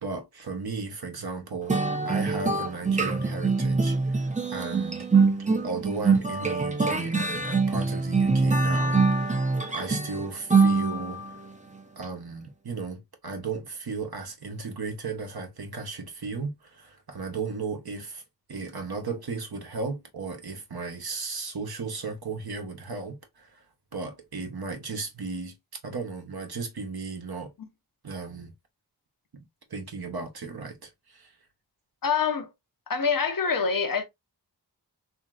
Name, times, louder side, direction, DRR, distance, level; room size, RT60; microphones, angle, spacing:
voice 1, 0.0-5.1 5.6-9.5 9.7-11.3 12.0-18.2 18.5-23.6 23.9-25.5 25.8-27.5 28.0-28.5 29.3-29.4 29.7-31.3, right 4 dB, 60° right, 0.9 m, -35 dB
sound 1, 1.7-11.3, right 4 dB, 20° right, 0.6 m, -24 dB
voice 2, 32.0-32.5 32.9-34.0, left 5 dB, 50° left, 0.7 m, -25 dB
2.9 x 2.7 x 2.3 m
cardioid pair, 40°, 42 cm